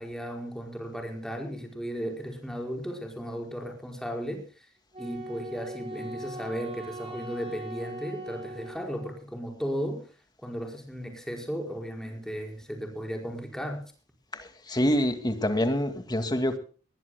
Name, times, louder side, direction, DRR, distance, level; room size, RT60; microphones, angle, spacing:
voice 1, 0.0-4.7 5.0-10.0 10.4-13.8, equal, 5° left, 1 dB, 5.0 m, -35 dB
Wind instrument woodwind instrument, 4.9-9.2, right 1 dB, 30° right, 4.6 m, -40 dB
voice 2, 14.3-16.6, equal, 25° left, 7 dB, 2.2 m, -26 dB
20.5 x 20.0 x 2.2 m, 0.38 s
head